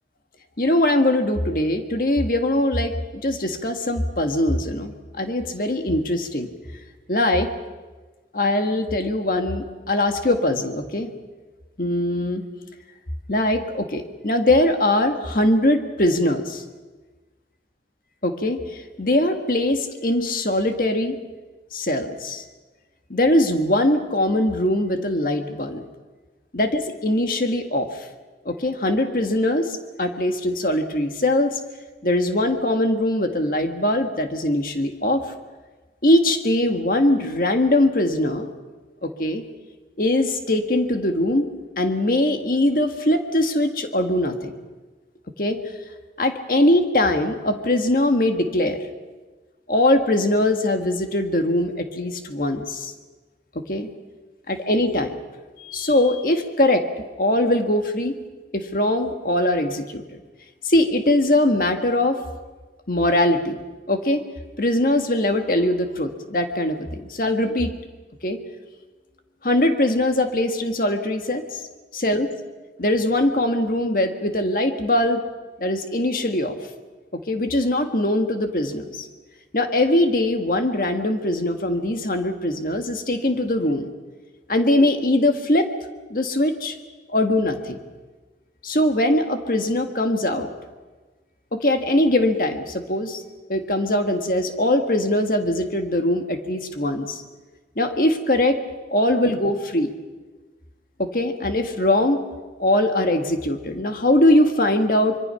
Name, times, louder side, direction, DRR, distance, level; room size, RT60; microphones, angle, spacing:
voice 1, 0.6-2.9 3.2-4.9 5.2-6.5 7.1-7.5 8.3-11.1 11.8-12.4 13.3-16.6 18.2-21.2 21.7-22.4 23.1-25.8 26.5-28.1 28.4-31.6 32.0-35.3 36.0-38.5 39.0-39.5 40.0-41.5 41.8-44.5 45.4-45.6 46.2-48.8 49.7-52.9 53.5-53.9 54.5-55.2 55.6-58.2 58.5-60.0 60.6-62.2 62.9-63.6 63.9-64.2 64.6-67.7 68.2-68.4 69.4-71.6 71.9-72.3 72.8-75.2 75.6-76.6 77.3-79.1 79.5-83.9 84.5-85.7 86.1-86.7 87.1-87.8 88.6-90.5 91.5-93.2 93.5-97.2 97.7-98.6 98.9-99.9 101.0-102.2 102.6-105.2, left 1 dB, 50° left, 6 dB, 1.7 m, -21 dB
25.0 x 23.0 x 5.8 m, 1.3 s
head